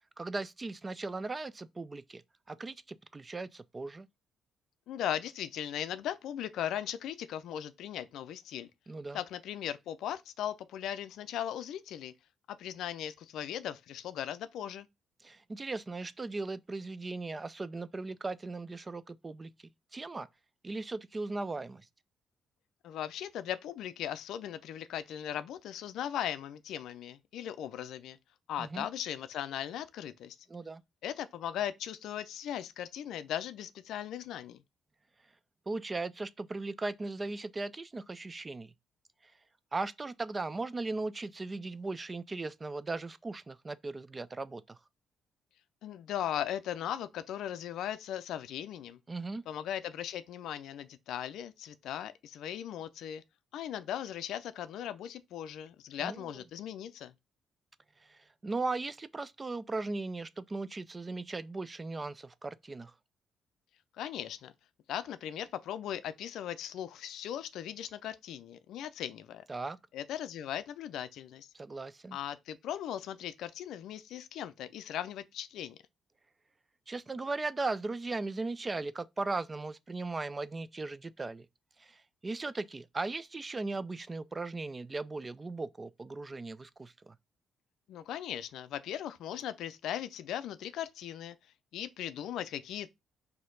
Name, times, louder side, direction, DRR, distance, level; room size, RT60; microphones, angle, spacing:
voice 1, 0.2-2.2 2.5-4.1 8.9-9.2 15.2-19.5 19.9-20.3 20.6-21.9 28.6-28.9 30.5-30.8 35.7-38.7 39.7-44.8 49.1-49.4 56.0-56.2 58.0-62.9 69.5-69.8 71.5-72.2 76.9-81.5 81.8-87.2, right 3 dB, 25° right, 0.3 m, -38 dB
voice 2, 4.9-8.7 9.1-12.1 12.5-14.9 22.8-28.2 28.5-30.4 31.0-34.6 45.8-49.0 49.5-53.2 53.5-57.1 63.9-64.5 64.9-69.4 69.9-71.5 72.1-75.8 87.9-91.4 91.7-92.9, left 10 dB, 80° left, 0.4 m, -38 dB
4.2 x 2.7 x 3.8 m
cardioid pair, 90°, 0 cm